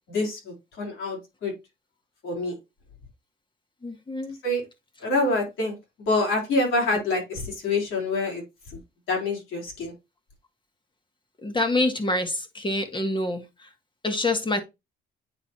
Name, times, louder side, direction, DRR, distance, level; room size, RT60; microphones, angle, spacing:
voice 1, 0.1-1.5 2.2-2.6 4.4-4.6 5.0-8.8 9.1-9.9, left 2 dB, 80° left, 3.7 m, -26 dB
voice 2, 3.8-4.4 11.4-13.7 14.0-14.6, left 2 dB, 25° left, 1.5 m, -26 dB
9.0 x 4.0 x 2.9 m
cardioid pair, 90°, 20 cm